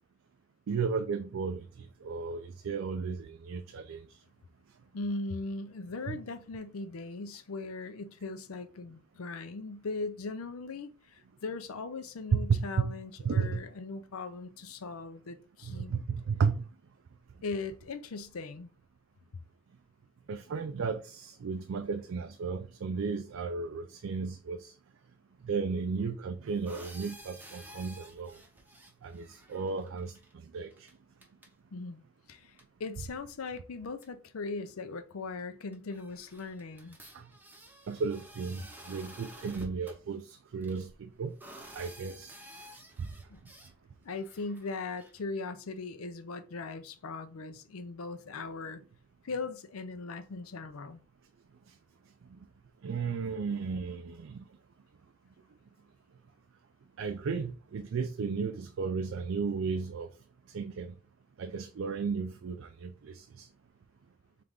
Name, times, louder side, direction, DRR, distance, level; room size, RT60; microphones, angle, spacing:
voice 1, 0.7-4.2 6.1-6.2 12.3-13.0 13.2-13.6 15.6-16.7 20.3-24.8 25.4-28.4 29.0-30.9 37.1-37.3 37.9-41.3 41.7-42.3 43.0-43.1 52.2-52.5 52.8-54.5 57.0-60.1 60.5-61.0 61.4-63.5, right 5 dB, 65° right, 0.4 m, -34 dB
voice 2, 4.9-15.9 17.4-18.7 31.7-32.0 32.3-37.0 43.3-43.5 44.0-48.8 49.2-51.0, left 3 dB, 90° left, 0.6 m, -39 dB
sound 1, 26.5-30.3 30.7-30.9 31.2-31.5 32.6-32.7 33.6-33.7 34.0-34.1 35.4-35.5 35.7-40.0 40.6-43.7 44.1-45.2, right 1 dB, 10° right, 0.7 m, -52 dB
3.7 x 3.3 x 3.5 m
head